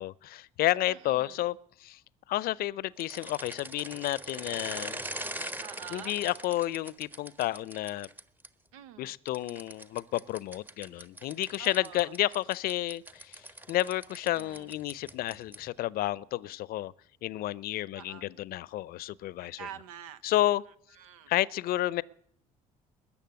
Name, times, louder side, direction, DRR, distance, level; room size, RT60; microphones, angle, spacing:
voice 1, 0.0-2.0 2.3-5.0 5.9-8.1 9.0-13.4 13.7-16.9 17.2-19.7 20.2-20.6 21.3-22.0, left 15 dB, 60° left, 0.6 m, -31 dB
voice 2, 0.9-1.4 5.6-6.1 8.7-9.1 11.6-12.1 14.3-14.7 17.9-18.3 19.4-20.2 21.0-21.3, right 10 dB, 85° right, 0.8 m, -46 dB
sound 1, 3.0-8.5 9.3-15.8, right 1 dB, 10° right, 1.0 m, -42 dB
20.5 x 7.1 x 9.5 m
hypercardioid pair, 60°, 18 cm